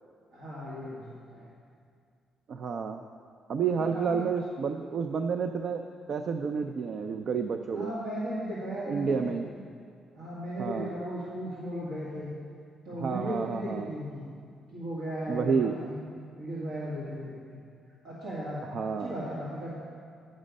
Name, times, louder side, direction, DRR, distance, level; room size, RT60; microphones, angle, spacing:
voice 1, 0.3-1.5 3.6-4.3 7.7-9.3 10.1-12.3 12.8-14.3 14.7-15.9 16.3-17.6 18.0-18.6 19.0-19.7, equal, 85° right, -9 dB, 1.9 m, -36 dB
voice 2, 2.5-3.0 3.5-7.9 8.9-9.5 10.6-10.9 13.0-13.9 15.3-15.8 18.7-19.2, right 6 dB, 60° right, 7 dB, 0.4 m, -30 dB
10.0 x 6.3 x 5.2 m, 2.3 s
cardioid pair, 90°, 0 cm